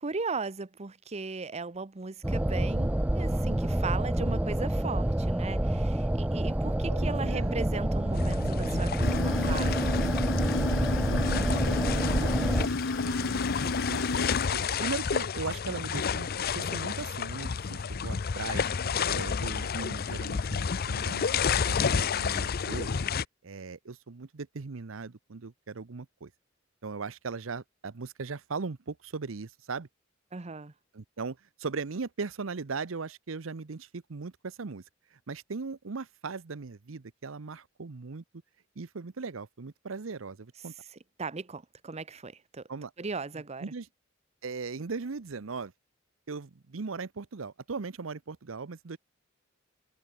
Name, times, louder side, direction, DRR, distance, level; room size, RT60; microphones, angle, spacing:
voice 1, 0.0-10.0 30.3-30.7 41.2-42.6 43.0-43.7, right 4 dB, 35° right, 0.8 m, -37 dB
sound 1, 2.2-12.7, right 1 dB, 10° right, 0.4 m, -28 dB
voice 2, 6.9-7.5 10.9-11.2 11.5-12.7 13.0-16.3 16.5-18.7 19.0-21.3 21.7-22.9 23.4-26.3 26.8-29.9 30.9-34.8 35.1-38.2 38.8-40.7 42.7-42.9 43.6-43.9 44.4-45.7 46.3-49.0, right 4 dB, 85° right, 0.8 m, -39 dB
sound 2, 8.1-23.2, left 6 dB, 50° left, 0.5 m, -31 dB
sound 3, 9.0-14.5, left 3 dB, 70° left, 1.1 m, -32 dB
head